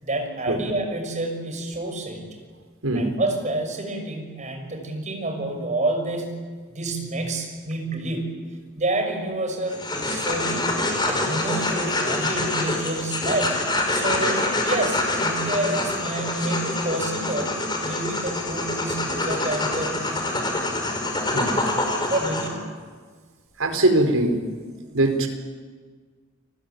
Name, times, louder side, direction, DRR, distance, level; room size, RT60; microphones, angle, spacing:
voice 1, 0.0-2.3 2.9-8.4 8.7-10.7 11.0-13.6 13.9-20.4 22.1-22.6, right 2 dB, 35° right, 4 dB, 6.1 m, -28 dB
sound 1, 9.7-22.5, left 2 dB, 20° left, 5.1 m, -26 dB
voice 2, 23.6-24.4 24.9-25.3, right 2 dB, 75° right, 6 dB, 4.3 m, -21 dB
29.0 x 21.0 x 9.2 m, 1.5 s
head